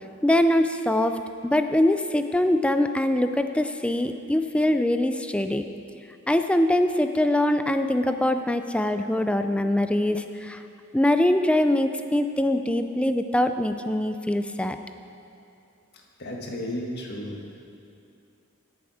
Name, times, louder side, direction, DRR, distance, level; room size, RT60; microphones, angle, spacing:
voice 1, 0.2-1.2 1.4-5.6 6.3-10.6 10.9-14.8, left 1 dB, 5° left, 8 dB, 0.4 m, -23 dB
voice 2, 16.2-17.6, left 1 dB, 50° left, -1 dB, 1.7 m, -33 dB
18.0 x 7.2 x 4.9 m, 2.6 s
head